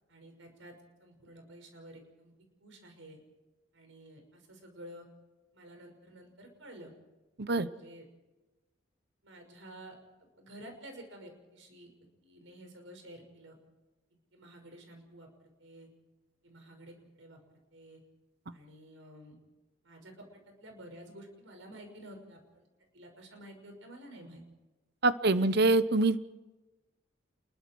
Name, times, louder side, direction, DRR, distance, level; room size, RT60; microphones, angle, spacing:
voice 1, 0.1-0.7 1.0-2.3 2.6-3.2 3.7-5.1 5.5-6.9 7.6-8.1 9.2-10.0 10.4-11.9 12.2-13.6 14.3-15.9 16.4-17.4 17.7-18.0 18.5-19.4 19.8-22.7 22.9-24.4 25.2-25.5, right 1 dB, 90° right, 4 dB, 5.9 m, -51 dB
voice 2, 25.0-26.2, right 2 dB, 55° right, 14 dB, 0.9 m, -25 dB
28.5 x 22.0 x 4.7 m, 1.1 s
head